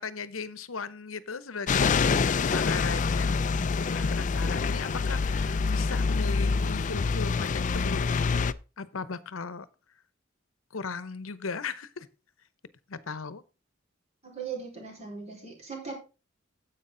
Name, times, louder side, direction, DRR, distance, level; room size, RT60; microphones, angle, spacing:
voice 1, 0.0-3.4 3.9-8.4 8.8-9.7 10.7-12.1 12.9-13.4, left 4 dB, 90° left, 16 dB, 0.8 m, -37 dB
sound 1, 1.7-8.5, left 4 dB, 40° left, 0.4 m, -26 dB
voice 2, 14.2-15.9, right 5 dB, 35° right, 0 dB, 4.4 m, -39 dB
9.8 x 8.1 x 3.8 m, 0.31 s
head